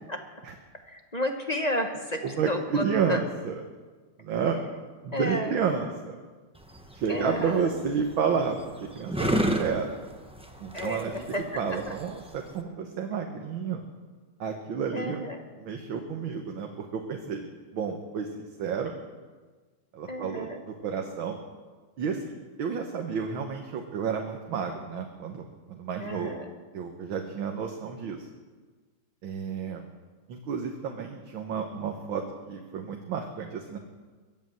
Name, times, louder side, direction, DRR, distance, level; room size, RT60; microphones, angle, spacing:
voice 1, 0.8-3.2 5.1-5.6 7.1-7.7 10.7-11.9 14.9-15.4 20.1-20.6 26.0-26.5, left 1 dB, 25° left, 4 dB, 0.9 m, -32 dB
voice 2, 2.2-3.6 4.2-4.6 5.0-6.2 6.9-9.9 10.6-11.1 11.6-12.2 12.5-13.8 14.4-15.2 15.6-17.4 17.7-18.9 19.9-21.4 22.0-22.2 22.6-26.3 26.7-28.3 29.2-29.9 30.3-33.8, right 6 dB, 75° right, 3 dB, 1.9 m, -31 dB
sound 1, 6.5-12.6, right 1 dB, 5° right, 0.7 m, -32 dB
22.0 x 8.3 x 7.7 m, 1.4 s
omnidirectional pair, 2.2 m